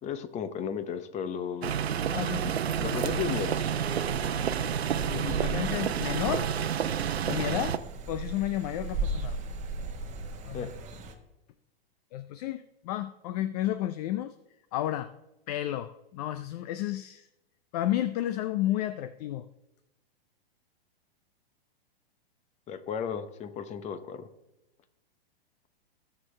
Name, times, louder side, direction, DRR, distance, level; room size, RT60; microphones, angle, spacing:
voice 1, 0.0-1.7 2.8-3.6 10.5-10.7 22.7-24.3, left 7 dB, 20° left, 11 dB, 0.8 m, -34 dB
sound 1, 1.6-7.8, right 8 dB, 85° right, 0.8 m, -29 dB
voice 2, 2.1-3.0 5.1-6.5 7.3-7.7 8.1-9.4 10.4-10.7 12.1-14.3 14.7-15.1 15.5-17.3 17.7-19.4, left 13 dB, 40° left, 12 dB, 0.5 m, -32 dB
sound 2, 2.6-11.1, right 2 dB, 25° right, 1.4 m, -38 dB
20.0 x 6.7 x 3.3 m, 0.96 s
hypercardioid pair, 125°, 31 cm